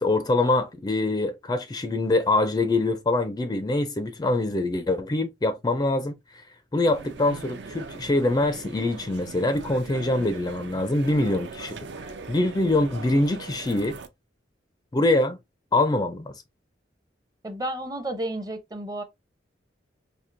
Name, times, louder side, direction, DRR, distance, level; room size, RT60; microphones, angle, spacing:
voice 1, 0.0-6.2 6.7-11.7 12.3-14.0 14.9-15.4 15.7-16.3, left 2 dB, 20° left, 0.4 m, -24 dB
sound 1, 6.9-14.1, right 4 dB, 70° right, 0.5 m, -41 dB
voice 2, 17.4-19.0, right 1 dB, 20° right, 0.6 m, -32 dB
4.4 x 2.7 x 2.5 m
head